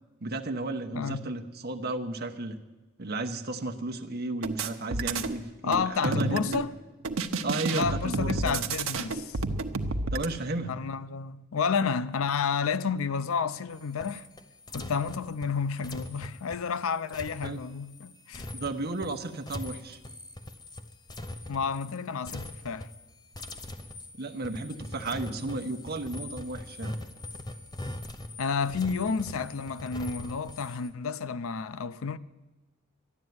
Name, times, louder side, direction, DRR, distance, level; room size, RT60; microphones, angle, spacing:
voice 1, 0.2-2.6 3.0-6.6 7.4-8.6 10.1-10.8 17.4-17.6 18.5-20.0 24.2-27.0, right 2 dB, 50° right, 1.0 m, -34 dB
voice 2, 0.9-1.3 5.6-6.7 7.7-9.4 10.7-14.3 14.7-18.5 21.5-22.9 28.4-32.2, left 5 dB, 80° left, 0.5 m, -30 dB
sound 1, 4.4-5.4 5.7-6.7 7.0-10.3, right 3 dB, 80° right, 0.9 m, -30 dB
sound 2, 13.7-22.0 22.2-23.1 23.3-30.9, left 1 dB, 20° left, 0.7 m, -42 dB
12.5 x 10.5 x 9.4 m
head